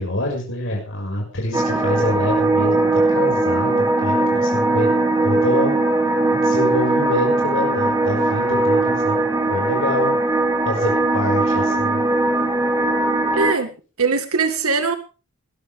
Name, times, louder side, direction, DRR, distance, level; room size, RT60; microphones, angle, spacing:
voice 1, 0.0-4.9 5.2-5.7 6.3-9.2 9.5-10.2 10.6-12.0, left 1 dB, 60° left, 0 dB, 6.4 m, -26 dB
sound 1, 1.5-13.5, right 2 dB, 15° right, 2.8 m, -19 dB
voice 2, 13.3-15.0, right 4 dB, 80° right, 8 dB, 1.8 m, -21 dB
20.5 x 13.5 x 3.7 m, 0.35 s
head